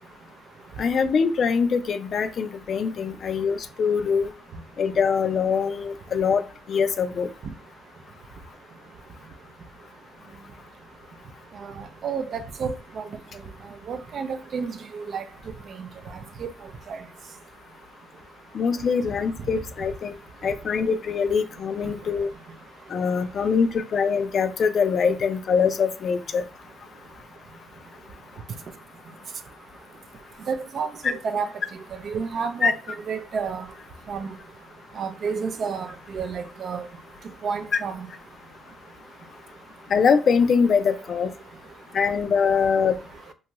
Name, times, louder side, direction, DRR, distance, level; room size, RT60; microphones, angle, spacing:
voice 1, 0.8-4.3 4.8-6.4 6.7-7.3 18.5-20.1 20.4-22.3 22.9-26.4 32.6-32.7 39.9-41.3 41.9-43.0, left 6 dB, 55° left, 0.3 m, -23 dB
voice 2, 11.6-13.0 13.9-15.2 15.8-15.9 16.4-16.5 16.9-17.0 30.5-31.5 32.0-32.8 33.1-33.7 34.1-34.3 35.0-36.8 37.4-38.1, right 5 dB, 60° right, 0.4 m, -30 dB
2.6 x 2.2 x 3.0 m
cardioid pair, 90°, 0 cm